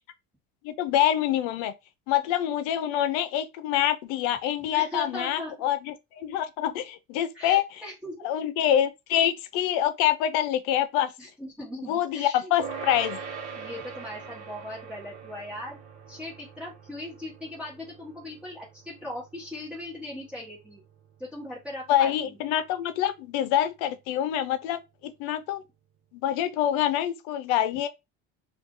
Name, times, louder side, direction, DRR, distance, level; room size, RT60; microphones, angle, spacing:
voice 1, 0.6-1.7 2.1-7.6 8.2-11.1 11.8-13.2 21.9-25.6 26.1-27.9, left 11 dB, 85° left, 0.7 m, -26 dB
voice 2, 4.7-5.5 7.3-8.3 11.2-12.5 13.5-15.8 16.1-20.8 21.2-22.3, left 1 dB, 5° right, 1.1 m, -39 dB
sound 1, 12.6-22.3, right 5 dB, 60° right, 1.0 m, -43 dB
2.7 x 2.5 x 3.6 m
cardioid pair, 160°, 30 cm